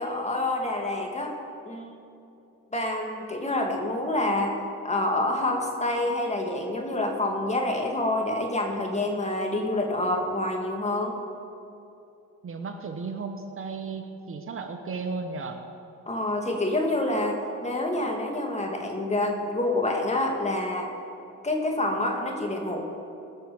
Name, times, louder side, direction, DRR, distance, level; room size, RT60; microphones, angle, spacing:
voice 1, 0.0-1.3 1.6-1.9 2.7-4.5 4.8-11.2 16.1-20.9 21.4-22.8, left 1 dB, 20° left, 2 dB, 2.2 m, -27 dB
voice 2, 12.4-15.6, right 4 dB, 45° right, 6 dB, 1.1 m, -34 dB
18.5 x 6.5 x 7.0 m, 2.7 s
cardioid pair, 90°, 30 cm